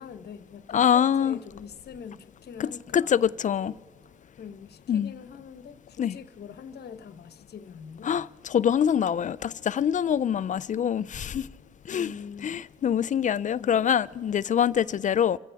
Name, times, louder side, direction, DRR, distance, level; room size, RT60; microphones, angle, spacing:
voice 1, 0.0-3.4 4.4-8.2 11.9-12.6 13.6-13.8, left 7 dB, 55° left, 1.0 m, -43 dB
voice 2, 0.7-1.4 2.6-2.7 2.9-3.7 4.9-5.1 6.0-6.2 8.0-11.5 11.9-12.1 12.4-15.4, left 8 dB, 40° left, 0.4 m, -24 dB
27.5 x 15.0 x 3.5 m
cardioid pair, 85°, 19 cm